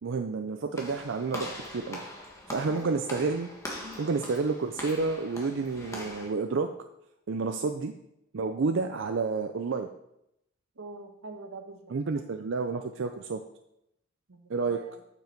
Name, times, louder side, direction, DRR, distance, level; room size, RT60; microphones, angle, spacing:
voice 1, 0.0-2.0 2.5-3.5 4.0-6.7 7.3-7.9 8.3-9.9 11.9-13.4 14.5-14.8, right 4 dB, 60° right, 6 dB, 0.4 m, -30 dB
Walk footsteps / Slam, 0.7-6.3, left 1 dB, 15° left, 1.4 m, -41 dB
voice 2, 10.8-11.8 14.3-14.4 14.7-14.9, right 2 dB, 80° right, 5 dB, 1.2 m, -44 dB
8.2 x 6.9 x 4.5 m, 0.82 s
head